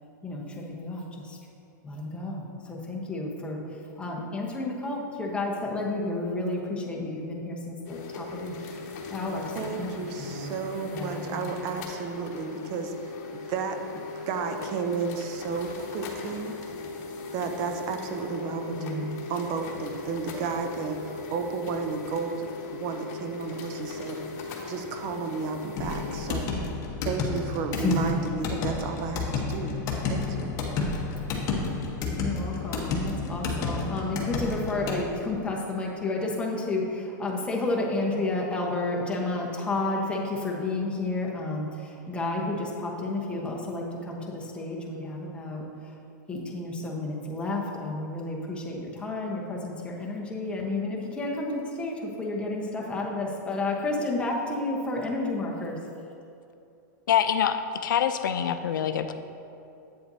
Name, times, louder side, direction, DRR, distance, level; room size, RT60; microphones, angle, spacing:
voice 1, 0.2-1.4 1.8-8.5 9.1-10.6 10.8-11.5 18.5-19.2 27.7-28.2 32.2-45.9 46.3-55.8, left 2 dB, 10° left, -2 dB, 1.0 m, -31 dB
sound 1, 7.8-26.5, left 3 dB, 55° left, 1.2 m, -38 dB
voice 2, 9.6-16.6 17.3-24.2 24.7-26.5 27.0-29.8 30.1-30.6, right 5 dB, 40° right, 6 dB, 0.6 m, -33 dB
sound 2, 25.8-35.0, left 4 dB, 35° left, 1.1 m, -31 dB
voice 3, 57.1-59.1, left 9 dB, 85° left, 9 dB, 0.5 m, -25 dB
8.3 x 7.7 x 2.7 m, 2.7 s
supercardioid pair, 140°, 10 cm